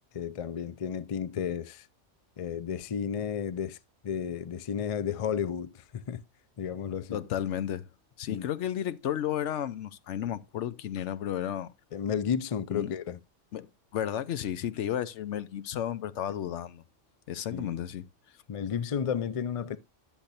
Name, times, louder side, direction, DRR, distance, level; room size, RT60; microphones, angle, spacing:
voice 1, 0.1-1.9 2.4-3.8 4.0-6.2 6.6-7.2 8.3-8.5 11.9-13.2 17.5-17.8 18.5-19.8, left 8 dB, 55° left, 0.4 m, -32 dB
voice 2, 7.1-7.8 8.2-11.7 12.7-12.9 13.5-16.8 17.3-18.1, left 10 dB, 70° left, 0.9 m, -33 dB
10.0 x 7.1 x 2.6 m
omnidirectional pair, 1.3 m